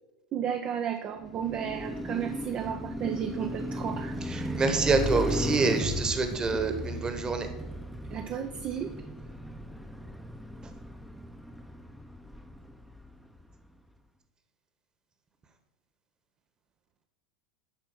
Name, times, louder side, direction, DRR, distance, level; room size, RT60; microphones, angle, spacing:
voice 1, 0.3-4.7 8.1-9.0, right 9 dB, 35° right, 6 dB, 0.7 m, -33 dB
Car passing by, 1.2-13.4, equal, ahead, 0.9 m, -36 dB
voice 2, 4.6-7.5, right 4 dB, 20° right, 7 dB, 1.4 m, -26 dB
11.5 x 4.4 x 6.0 m, 1.1 s
figure-of-eight pair, 85°, 4 cm